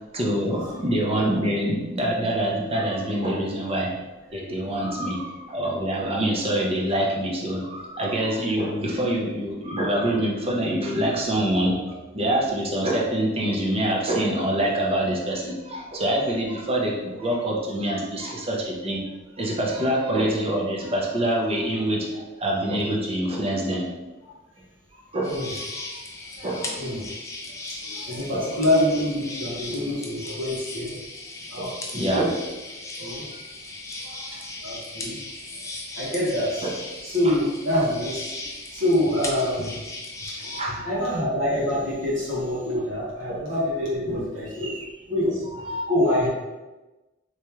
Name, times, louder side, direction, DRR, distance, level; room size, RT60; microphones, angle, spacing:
voice 1, 0.1-3.9 4.3-11.8 12.1-19.0 19.4-23.8 25.1-26.0 26.4-26.8 28.3-28.5 31.6-31.7 31.9-32.3 36.6-36.7 37.2-37.5 40.5-41.1 43.3-43.4 44.6-44.9 45.5-46.2, right 1 dB, 30° right, -2 dB, 0.7 m, -25 dB
sound 1, 25.2-40.6, left 2 dB, 15° left, 0.4 m, -37 dB
voice 2, 26.4-27.1 27.8-31.0 31.5-32.3 33.0-33.3 34.0-34.2 34.6-35.4 36.0-36.7 37.0-38.2 38.7-39.8 40.4-40.6 40.8-44.7 45.1-45.4 45.9-46.3, left 1 dB, 65° right, -7 dB, 1.4 m, -26 dB
3.4 x 3.0 x 3.0 m, 1.1 s
head